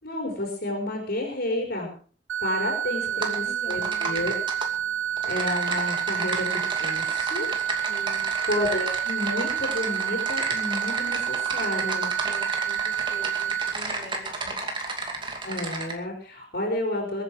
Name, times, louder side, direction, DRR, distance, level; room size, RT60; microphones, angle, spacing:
voice 1, 0.0-1.9 2.4-4.3 5.2-7.5 8.5-12.1 15.4-17.2, left 1 dB, 55° left, 0 dB, 5.0 m, -30 dB
sound 1, 2.3-13.7, right 10 dB, 75° right, 1.0 m, -29 dB
voice 2, 3.0-4.2 7.9-8.3 12.2-14.6, equal, 25° left, 1 dB, 4.7 m, -45 dB
Typing, 3.2-3.4 3.7-4.7 5.2-15.9, right 3 dB, 25° right, 2.5 m, -32 dB
22.5 x 9.4 x 4.9 m, 0.42 s
head